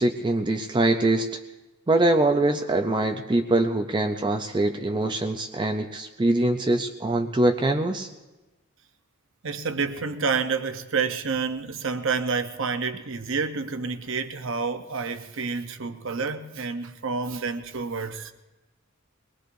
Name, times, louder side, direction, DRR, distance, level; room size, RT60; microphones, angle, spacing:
voice 1, 0.0-1.4 1.9-8.1, right 2 dB, 20° right, 0.5 m, -23 dB
voice 2, 9.4-18.3, right 5 dB, 60° right, 0.9 m, -29 dB
23.0 x 19.5 x 2.7 m
head